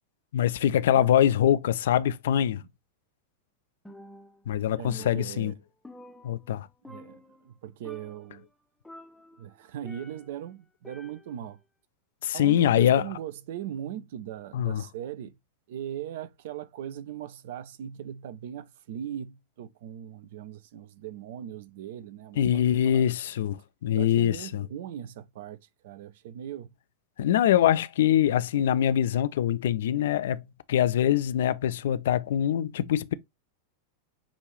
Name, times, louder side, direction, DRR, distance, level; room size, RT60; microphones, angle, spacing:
voice 1, 0.3-2.6 4.5-5.5 6.2-6.7 12.2-13.1 14.5-14.8 22.4-24.6 27.2-30.4 30.7-33.1, left 10 dB, 60° left, 0.3 m, -24 dB
Percussion, 3.8-4.5 4.8-6.6 6.8-7.5 7.8-8.4 8.8-10.4 10.8-11.5, left 1 dB, 5° left, 0.6 m, -49 dB
voice 2, 4.7-5.5 6.9-8.5 9.4-11.6 12.3-15.4 15.7-23.1 23.9-25.6 25.8-26.7, right 10 dB, 55° right, 0.5 m, -39 dB
6.1 x 2.6 x 3.1 m
figure-of-eight pair, 90°, 0 cm